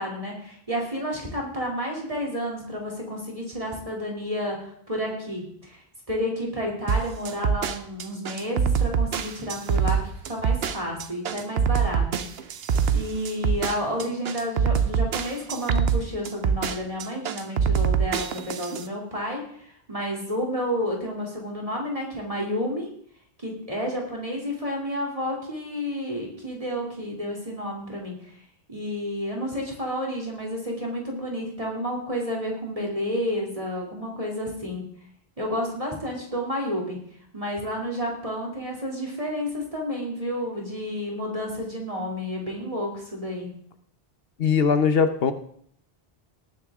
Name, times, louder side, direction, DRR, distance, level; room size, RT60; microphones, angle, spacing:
voice 1, 0.0-12.2 12.9-22.9 23.4-28.3 28.7-34.8 35.4-37.0 37.3-43.5, equal, 35° right, -1 dB, 2.9 m, -30 dB
sound 1, 6.9-18.9, right 7 dB, 75° right, 1.0 m, -24 dB
voice 2, 44.4-45.3, left 6 dB, 70° left, 10 dB, 1.1 m, -20 dB
18.5 x 9.5 x 3.6 m, 0.64 s
omnidirectional pair, 1.0 m